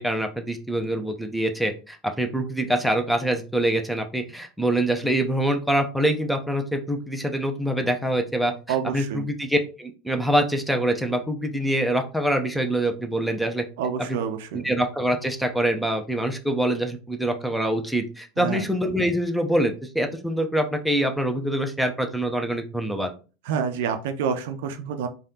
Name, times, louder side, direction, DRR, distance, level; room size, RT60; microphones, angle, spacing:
voice 1, 0.0-13.6 14.1-14.2 14.6-23.1, right 1 dB, ahead, 4 dB, 0.5 m, -25 dB
voice 2, 8.7-9.3 13.8-14.7 18.4-18.7 23.5-25.1, right 7 dB, 65° right, 7 dB, 0.4 m, -28 dB
3.2 x 2.3 x 2.7 m, 0.34 s
figure-of-eight pair, 80°, 0 cm